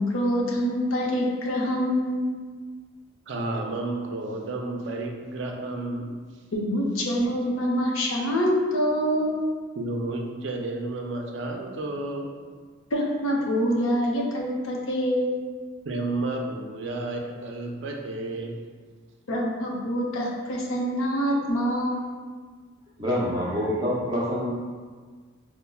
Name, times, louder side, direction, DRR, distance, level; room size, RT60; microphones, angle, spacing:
voice 1, 0.0-2.3 6.5-9.4 12.9-15.4 19.3-22.1, equal, 85° left, -2 dB, 0.6 m, -25 dB
voice 2, 3.3-6.1 9.7-12.3 15.8-18.6, right 2 dB, 60° right, 1 dB, 0.4 m, -31 dB
voice 3, 23.0-24.5, equal, 20° right, -6 dB, 0.6 m, -26 dB
5.3 x 2.0 x 2.3 m, 1.5 s
head